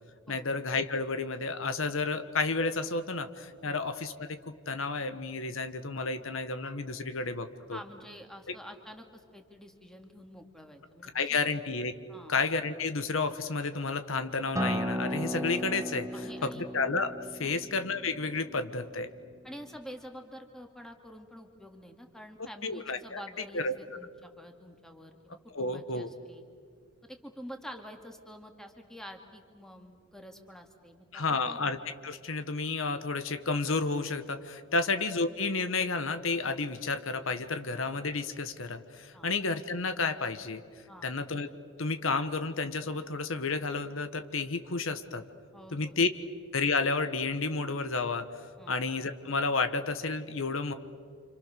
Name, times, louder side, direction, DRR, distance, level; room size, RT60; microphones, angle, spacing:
voice 1, 0.3-7.8 8.5-8.6 11.1-11.9 12.3-16.1 16.4-19.1 22.6-23.2 23.5-23.8 25.5-26.1 31.1-40.6 41.0-41.5 41.8-45.2 45.7-46.1 46.5-48.3 48.7-50.7, left 3 dB, 70° left, 9 dB, 1.3 m, -31 dB
voice 2, 7.7-11.4 12.1-12.4 16.1-16.6 17.4-17.6 19.4-26.4 27.0-31.6 34.7-34.9 39.1-39.3 40.9-41.1 45.5-46.1 48.6-48.8, equal, ahead, 4 dB, 2.3 m, -48 dB
Acoustic guitar, 14.6-19.8, equal, 15° right, 1.3 m, -36 dB
30.0 x 27.0 x 6.8 m, 2.1 s
head